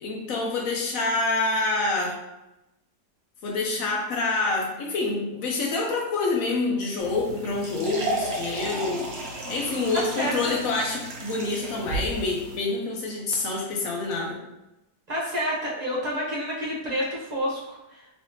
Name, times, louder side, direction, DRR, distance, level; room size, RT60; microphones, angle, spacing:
voice 1, 0.0-2.2 3.4-9.1 9.5-14.4, left 3 dB, 60° left, -1 dB, 1.0 m, -27 dB
sound 1, 7.0-12.6, right 2 dB, 60° right, 0.7 m, -34 dB
voice 2, 9.9-10.6 15.1-18.0, equal, 30° right, -6 dB, 0.9 m, -29 dB
3.2 x 3.1 x 2.8 m, 0.93 s
omnidirectional pair, 1.8 m